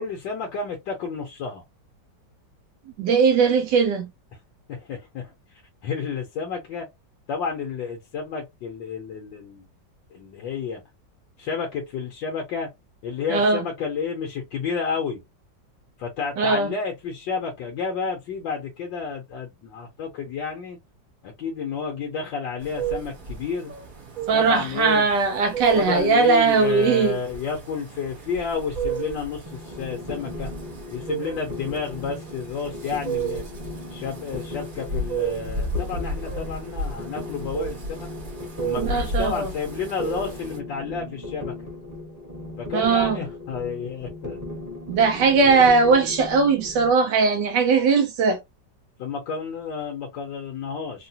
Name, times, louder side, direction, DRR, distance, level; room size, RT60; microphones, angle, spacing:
voice 1, 0.0-1.6 4.7-6.9 7.3-9.7 10.1-10.8 11.4-12.7 13.0-15.2 16.0-20.8 21.2-23.7 24.3-25.0 25.7-30.5 30.9-33.5 33.9-38.1 38.6-41.7 42.6-44.4 45.5-45.7 49.0-51.1, left 5 dB, 75° left, 1.5 m, -31 dB
voice 2, 3.0-4.1 13.3-13.6 16.4-16.7 24.3-27.2 38.8-39.5 42.7-43.2 44.9-48.4, right 4 dB, 75° right, 1.1 m, -19 dB
sound 1, 22.6-40.6, right 4 dB, 35° right, 1.0 m, -33 dB
sound 2, 29.5-46.9, left 2 dB, 15° right, 0.8 m, -37 dB
3.7 x 2.4 x 2.7 m
omnidirectional pair, 2.0 m